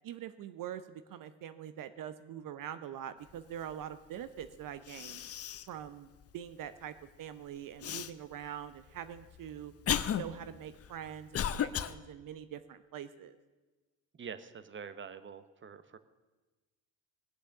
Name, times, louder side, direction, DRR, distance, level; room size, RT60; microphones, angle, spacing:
voice 1, 0.0-5.2 5.7-9.7 10.1-13.4, right 10 dB, 50° right, 12 dB, 0.8 m, -44 dB
Cough, 4.4-4.5 4.9-5.8 6.2-6.3 7.8-8.1 8.9-11.9, left 9 dB, 35° left, 0.7 m, -34 dB
voice 2, 14.1-16.0, right 6 dB, 25° right, 12 dB, 1.0 m, -46 dB
19.5 x 6.7 x 6.6 m, 1.2 s
hypercardioid pair, 65°, 44 cm